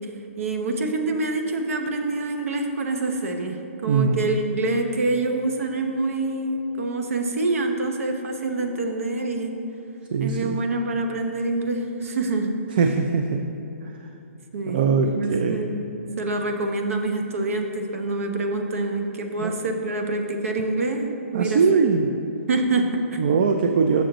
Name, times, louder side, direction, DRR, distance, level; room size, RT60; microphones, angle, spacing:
voice 1, 0.4-9.6 10.2-12.6 14.5-15.9 16.2-21.8 22.5-23.4, right 2 dB, 75° right, 4 dB, 0.8 m, -26 dB
voice 2, 3.9-4.2 10.1-10.6 12.8-13.5 14.7-15.6 19.4-19.5 21.3-22.1 23.2-24.0, right 5 dB, 40° right, 5 dB, 0.3 m, -21 dB
6.8 x 6.3 x 3.8 m, 2.9 s
hypercardioid pair, 165°, 8 cm